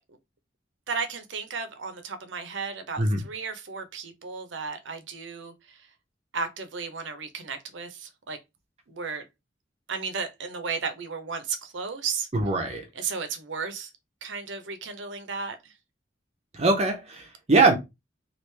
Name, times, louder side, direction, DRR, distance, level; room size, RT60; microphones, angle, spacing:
voice 1, 0.9-5.9 6.3-8.4 8.9-9.3 9.9-12.3 12.9-13.9 14.2-15.7, right 5 dB, 85° right, 0.7 m, -34 dB
voice 2, 12.3-12.9 16.5-17.7, right 3 dB, 35° right, 0.6 m, -22 dB
3.1 x 2.5 x 3.2 m
head